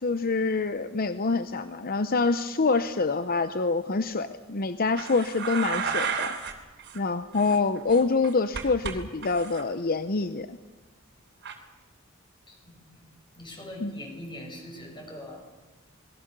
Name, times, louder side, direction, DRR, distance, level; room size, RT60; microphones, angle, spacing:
voice 1, 0.0-6.3 6.9-10.6 13.8-13.9, left 4 dB, 45° left, 11 dB, 0.8 m, -26 dB
sound 1, 5.0-6.5 6.8-7.0 7.3-8.9 9.2-9.6 11.4-11.5, right 6 dB, 55° right, 3.2 m, -32 dB
voice 2, 12.5-13.1 13.4-15.5, left 1 dB, 25° left, 1 dB, 6.7 m, -42 dB
28.0 x 21.0 x 6.8 m, 1.2 s
head